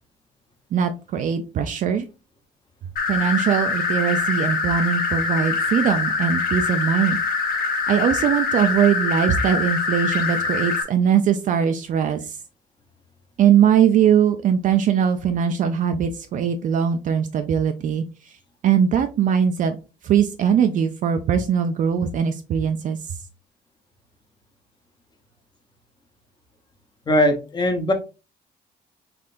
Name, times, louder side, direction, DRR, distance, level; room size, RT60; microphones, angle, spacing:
voice 1, 0.7-2.1 3.1-7.2 7.9-12.4 13.4-18.0 18.6-19.8 20.0-23.2, right 8 dB, 50° right, 7 dB, 0.4 m, -21 dB
sound 1, 3.0-10.8, left 4 dB, 60° left, 1.0 m, -24 dB
voice 2, 27.1-27.9, left 1 dB, 25° left, 6 dB, 0.8 m, -20 dB
3.7 x 3.2 x 2.5 m, 0.30 s
cardioid pair, 110°, 17 cm